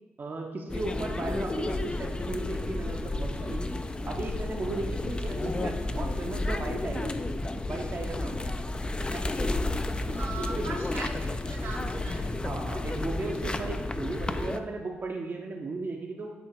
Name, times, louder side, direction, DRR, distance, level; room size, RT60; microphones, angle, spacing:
voice 1, 0.2-3.7 4.0-7.1 7.7-8.5 10.1-10.7 12.4-16.3, right 3 dB, 45° right, 1 dB, 0.7 m, -36 dB
sound 1, 0.7-14.6, left 2 dB, 20° left, 0.4 m, -31 dB
voice 2, 10.2-12.3, right 4 dB, 70° right, 0 dB, 0.9 m, -40 dB
7.6 x 2.8 x 4.6 m, 1.2 s
hypercardioid pair, 45°, 5 cm